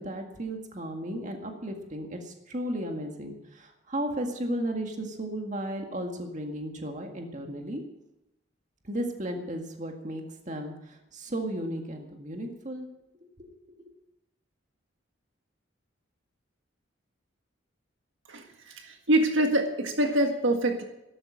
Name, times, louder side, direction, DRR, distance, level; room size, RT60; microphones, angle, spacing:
voice 1, 0.0-7.8 8.8-12.9 13.4-13.8, right 1 dB, 35° right, 3 dB, 1.9 m, -34 dB
voice 2, 18.8-20.8, right 1 dB, 70° right, 4 dB, 1.7 m, -24 dB
13.5 x 12.5 x 6.3 m, 0.90 s
head